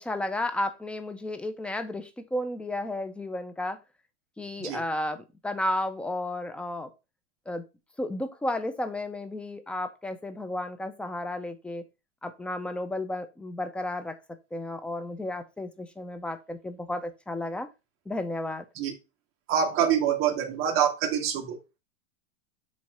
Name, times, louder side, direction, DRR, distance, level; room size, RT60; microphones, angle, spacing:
voice 1, 0.0-3.8 4.4-6.9 7.5-7.6 8.0-11.8 12.2-14.2 14.5-17.7 18.1-18.7, left 1 dB, 5° left, 0.4 m, -33 dB
voice 2, 19.5-21.6, right 8 dB, 35° right, 1.8 m, -25 dB
7.3 x 3.1 x 6.1 m
supercardioid pair, 145°, 37 cm